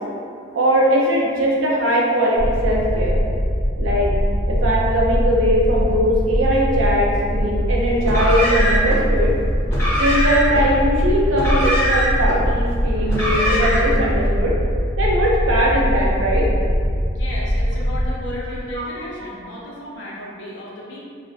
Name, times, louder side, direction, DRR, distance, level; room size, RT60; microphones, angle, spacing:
voice 1, 0.6-3.2 3.8-4.1 4.5-9.3 10.0-14.5 15.0-16.5, equal, 75° right, -3 dB, 0.5 m, -20 dB
sound 1, 2.4-18.1, equal, 35° right, 0.7 m, -21 dB
Car, 8.0-9.0 9.7-10.6 11.3-12.4 13.0-14.0, equal, 10° left, 0.5 m, -22 dB
voice 2, 17.1-21.0, left 1 dB, 65° left, -5 dB, 0.5 m, -34 dB
2.4 x 2.0 x 2.5 m, 2.2 s
head